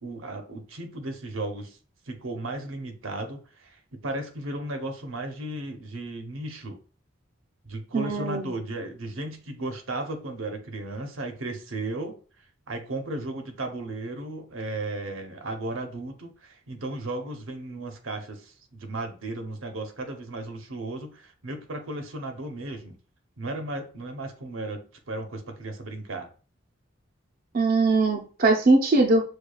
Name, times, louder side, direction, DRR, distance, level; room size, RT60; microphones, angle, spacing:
voice 1, 0.0-1.8 2.1-6.8 7.6-12.2 12.7-23.0 23.4-26.3, right 2 dB, 75° right, 0.7 m, -35 dB
voice 2, 7.9-8.5 27.5-29.2, right 3 dB, 45° right, 0.5 m, -21 dB
6.5 x 2.3 x 2.3 m
head